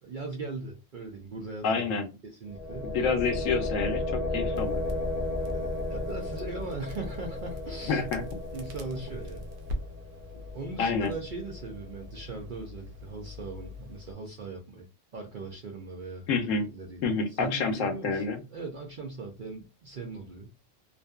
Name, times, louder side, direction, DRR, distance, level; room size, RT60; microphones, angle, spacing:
voice 1, 0.0-1.9 2.2-2.9 5.5-8.0 8.5-9.4 10.3-14.9 15.1-16.3 16.7-18.2 18.5-20.5, right 3 dB, 60° right, 1 dB, 0.5 m, -39 dB
voice 2, 1.6-2.1 2.9-4.8 7.9-8.2 10.8-11.1 16.3-16.6 17.0-18.4, left 4 dB, 80° left, 7 dB, 0.9 m, -28 dB
sound 1, 2.5-12.3, left 2 dB, 25° left, 0.7 m, -35 dB
Crackle, 4.5-14.1, left 2 dB, 80° right, 1.0 m, -43 dB
2.6 x 2.4 x 2.2 m, 0.30 s
omnidirectional pair, 1.3 m